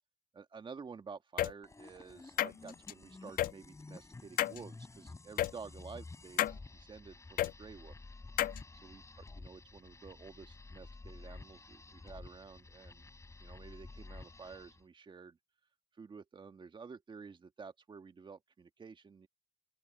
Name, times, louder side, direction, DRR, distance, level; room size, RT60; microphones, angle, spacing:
voice 1, 0.3-8.0 8.8-13.1 13.4-15.4 16.0-19.3, right 5 dB, 30° right, 1.6 m, -51 dB
sound 1, 1.4-1.5 2.4-2.9 3.4-3.5 4.4-4.6 5.4-5.5 6.4-6.6 7.4-7.5 8.4-8.6, left 13 dB, 55° left, 0.4 m, -31 dB
sound 2, 1.6-14.8, left 3 dB, 15° left, 4.3 m, -52 dB
open air
cardioid pair, 110°, 17 cm